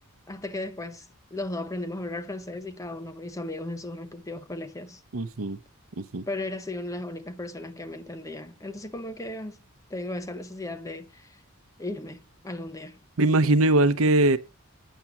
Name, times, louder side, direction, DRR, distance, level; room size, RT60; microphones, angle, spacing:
voice 1, 0.3-5.0 6.3-9.6 9.9-11.4 11.8-13.0, left 1 dB, 15° left, 0.7 m, -36 dB
voice 2, 5.1-5.6 6.0-6.2 13.2-14.4, right 2 dB, 65° right, 0.8 m, -21 dB
9.2 x 7.4 x 7.0 m
head